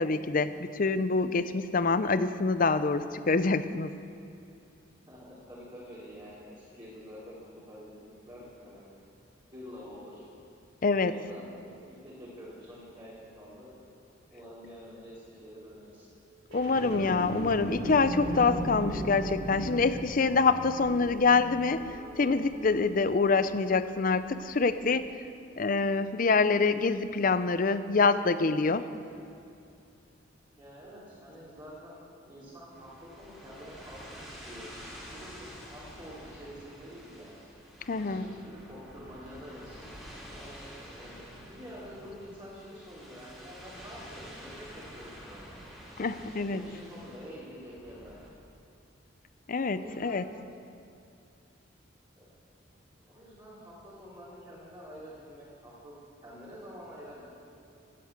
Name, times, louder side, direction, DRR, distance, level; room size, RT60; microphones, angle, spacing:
voice 1, 0.0-3.9 10.8-11.1 16.5-21.8 22.2-25.1 25.6-28.9 37.9-38.3 46.0-46.6 49.5-50.2, left 4 dB, 45° left, 12 dB, 0.6 m, -26 dB
voice 2, 5.1-9.0 9.5-10.2 11.0-13.7 14.3-16.1 30.6-37.3 37.9-39.8 40.3-45.6 46.3-48.2 49.7-50.3 52.1-52.3 53.0-55.9 56.2-57.2, equal, 25° right, -10 dB, 3.4 m, -47 dB
sound 1, 16.5-23.9 24.5-24.6, right 1 dB, 70° right, 3.5 m, -38 dB
sound 2, 32.7-48.3, equal, ahead, 3.5 m, -49 dB
14.5 x 8.8 x 8.1 m, 2.6 s
head